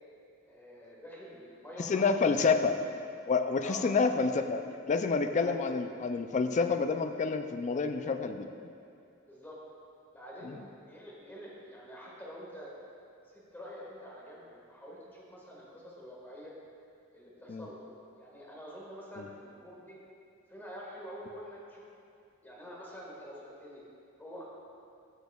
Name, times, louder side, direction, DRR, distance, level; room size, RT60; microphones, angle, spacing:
voice 1, 0.4-2.4 3.6-3.9 5.4-5.6 9.2-9.6 10.1-12.7 13.3-16.5 17.1-17.7 18.2-19.9 20.5-21.9 22.4-23.8 24.2-24.5, equal, 10° left, -5 dB, 1.6 m, -47 dB
voice 2, 1.8-2.8 3.3-8.5 10.4-10.6 17.5-17.7 19.2-19.3, left 4 dB, 35° left, 8 dB, 0.4 m, -28 dB
13.0 x 6.1 x 2.3 m, 2.4 s
head